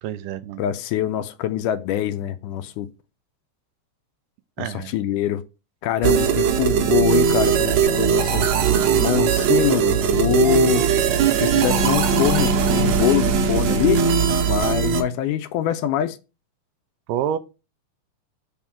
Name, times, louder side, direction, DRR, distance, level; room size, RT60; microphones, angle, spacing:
voice 1, 0.0-0.6 4.6-4.9 17.1-17.4, right 10 dB, 90° right, 2.2 m, -27 dB
voice 2, 0.6-2.9 4.6-5.4 5.8-8.5 8.9-10.9 11.4-14.1 14.5-16.2, left 12 dB, 85° left, 2.0 m, -24 dB
sound 1, 6.0-15.0, right 7 dB, 70° right, 1.8 m, -19 dB
5.1 x 3.6 x 5.7 m
omnidirectional pair, 3.7 m